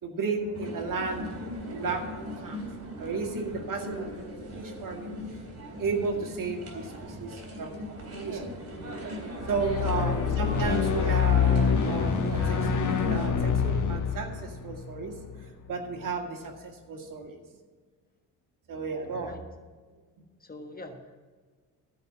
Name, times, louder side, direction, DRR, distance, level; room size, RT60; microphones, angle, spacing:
voice 1, 0.0-4.3 4.5-5.2 5.7-7.8 8.2-8.5 9.5-15.2 15.7-17.4 18.7-19.4, right 4 dB, 55° right, 3 dB, 2.0 m, -34 dB
sound 1, 0.5-13.3, equal, 40° right, 3.6 m, -38 dB
sound 2, 9.3-15.7, left 7 dB, 50° left, 1.3 m, -26 dB
voice 2, 9.8-11.1 19.0-19.4 20.4-21.2, left 1 dB, 25° left, 4 dB, 1.3 m, -43 dB
13.5 x 5.4 x 7.4 m, 1.5 s
cardioid pair, 90°, 38 cm